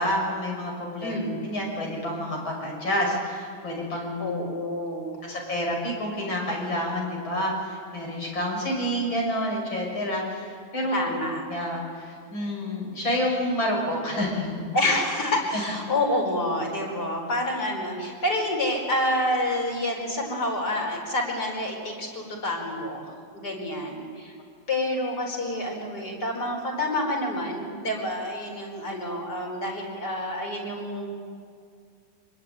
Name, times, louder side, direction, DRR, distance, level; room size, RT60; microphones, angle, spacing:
voice 1, 0.0-4.4 5.3-11.1 11.5-14.7, equal, 90° left, -1 dB, 7.2 m, -29 dB
voice 2, 1.0-1.4 3.9-5.3 10.9-11.4 14.7-24.3 24.7-31.1, left 1 dB, 55° left, 1 dB, 5.4 m, -28 dB
25.5 x 20.5 x 9.4 m, 2.3 s
omnidirectional pair, 2.1 m